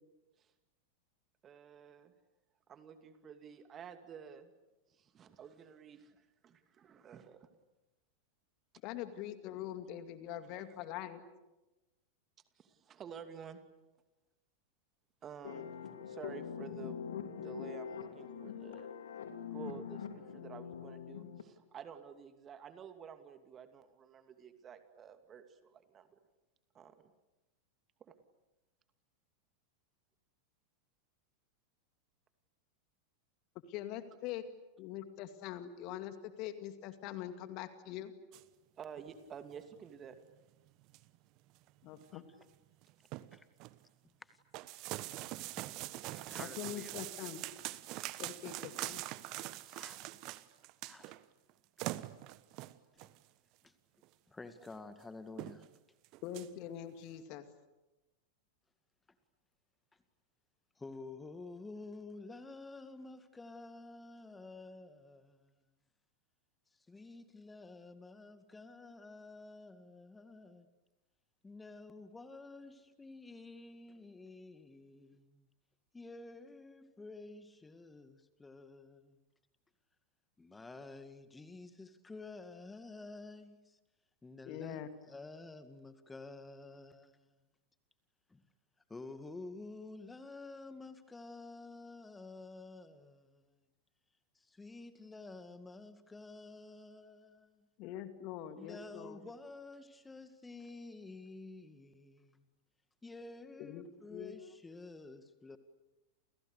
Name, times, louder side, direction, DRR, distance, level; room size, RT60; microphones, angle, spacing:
voice 1, 1.4-2.1 2.7-4.5 5.0-7.5 12.6-13.6 15.2-18.9 19.5-26.2 26.7-27.1 28.0-28.1 38.8-40.2, right 7 dB, 25° right, 2.6 m, -51 dB
voice 2, 8.8-11.2 33.7-34.4 34.8-38.1 41.8-42.2 46.6-47.4 48.2-49.0 56.2-57.5 84.4-84.9 97.8-99.2 103.6-103.8 104.1-104.4, left 11 dB, 40° left, 2.3 m, -43 dB
sound 1, 15.4-21.4, left 8 dB, 60° left, 2.7 m, -44 dB
sound 2, 38.3-38.4 39.0-39.2 39.5-39.6 40.1-40.2 40.7-41.2 41.6-41.7 42.0-42.1 42.4-42.6 42.8-43.8 44.5-51.2 51.5-51.6 51.8-53.2 54.0-54.1 54.6-54.7 55.0-55.1 55.4-55.8 56.0-56.5, right 18 dB, 40° right, 1.2 m, -43 dB
voice 3, 44.0-44.4 45.5-45.6 46.0-47.1 49.3-50.1 50.8-51.2 52.0-52.1 52.9-53.1 53.6-53.7 54.3-55.7 60.8-65.6 66.9-70.7 71.4-75.5 75.9-79.2 80.4-83.8 84.2-87.4 88.3-88.4 88.9-93.6 94.4-97.7 98.6-102.5 103.0-105.6, left 3 dB, 10° left, 2.1 m, -51 dB
30.0 x 29.5 x 6.7 m
figure-of-eight pair, 90°, 0 cm